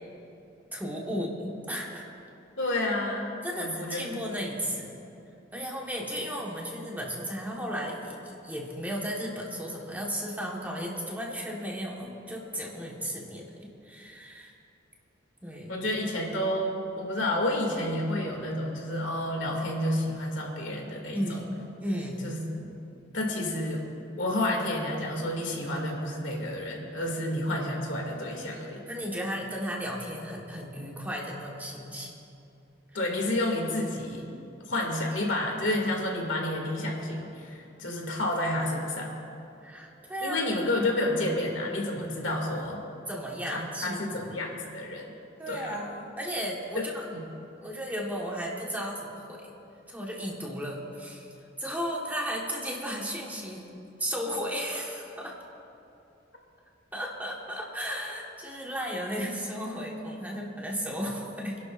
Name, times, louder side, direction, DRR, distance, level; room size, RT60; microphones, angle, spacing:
voice 1, 0.7-2.0 3.4-4.9 5.5-14.5 15.4-15.8 21.1-21.5 21.8-22.3 28.9-32.1 39.6-40.6 43.1-44.3 45.4-47.0 47.6-49.5 49.9-51.3 51.6-53.6 54.0-55.3 56.9-61.6, equal, 10° right, -3 dB, 1.5 m, -34 dB
voice 2, 2.6-4.2 15.7-21.4 22.2-22.7 23.1-23.9 24.2-28.8 32.9-34.3 34.7-39.1 40.2-42.8 43.5-45.1 45.5-45.8 46.7-47.2, left 1 dB, 70° left, -1 dB, 2.6 m, -30 dB
29.5 x 11.5 x 2.6 m, 2.7 s
head